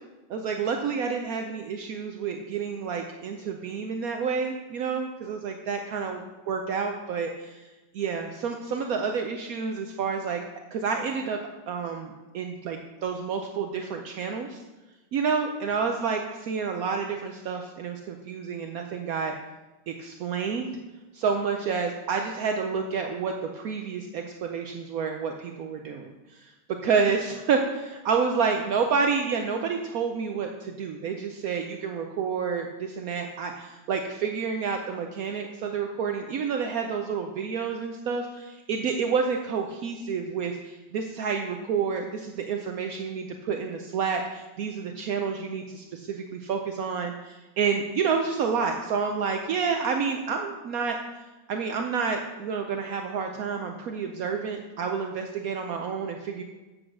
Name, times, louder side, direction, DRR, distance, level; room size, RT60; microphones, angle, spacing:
voice 1, 0.3-7.7 7.9-10.4 10.7-11.4 11.7-14.6 15.1-19.3 19.9-20.7 21.1-26.5 26.8-51.0 51.5-56.4, right 5 dB, 70° right, 4 dB, 1.0 m, -29 dB
7.9 x 6.3 x 6.2 m, 1.1 s
omnidirectional pair, 1.7 m